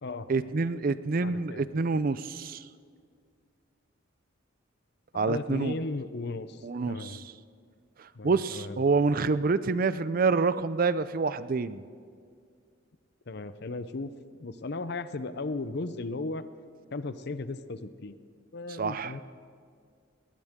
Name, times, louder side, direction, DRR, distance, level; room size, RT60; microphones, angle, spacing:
voice 1, 0.3-2.7 5.1-5.7 6.6-7.3 8.0-11.8 18.7-19.2, right 4 dB, 45° right, 15 dB, 0.5 m, -27 dB
voice 2, 1.2-1.6 5.1-7.2 8.1-8.8 13.3-14.1 14.4-16.4 16.9-18.2 18.5-19.2, left 3 dB, 55° left, 13 dB, 0.7 m, -36 dB
21.0 x 19.0 x 3.7 m, 2.1 s
head